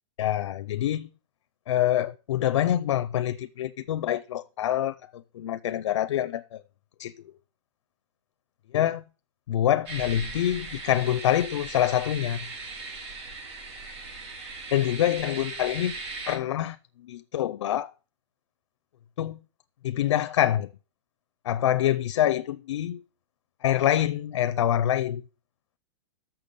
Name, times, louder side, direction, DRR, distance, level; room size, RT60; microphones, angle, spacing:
voice 1, 0.2-1.1 1.7-6.6 7.0-7.1 8.7-9.0 9.5-12.4 14.7-16.0 16.3-16.8 17.1-17.9 19.2-19.4 19.8-20.7 21.4-23.0 23.6-25.2, left 12 dB, 85° left, 0.5 m, -26 dB
sound 1, 9.9-16.4, right 3 dB, 60° right, 3.4 m, -38 dB
6.9 x 5.9 x 6.5 m
supercardioid pair, 175°, 15 cm